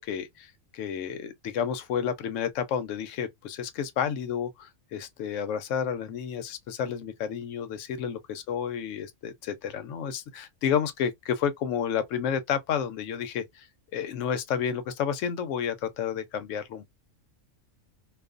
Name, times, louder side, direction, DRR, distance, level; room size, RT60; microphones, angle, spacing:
voice 1, 0.0-13.6 13.9-16.8, left 8 dB, 70° left, 0.9 m, -31 dB
2.4 x 2.4 x 2.4 m
omnidirectional pair, 1.4 m